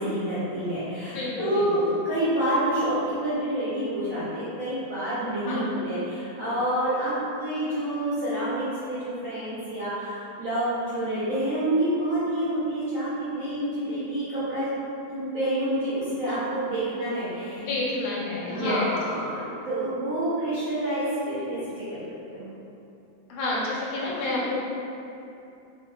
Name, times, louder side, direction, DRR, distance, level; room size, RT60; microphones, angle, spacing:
voice 1, 0.0-14.7 15.1-17.6 18.5-22.0 22.3-22.4, right 1 dB, 65° right, -14 dB, 0.8 m, -28 dB
voice 2, 1.0-1.9 5.5-5.6 17.5-18.9 23.3-24.6, left 2 dB, 90° left, -5 dB, 1.5 m, -29 dB
3.0 x 2.5 x 2.2 m, 2.8 s
omnidirectional pair, 2.2 m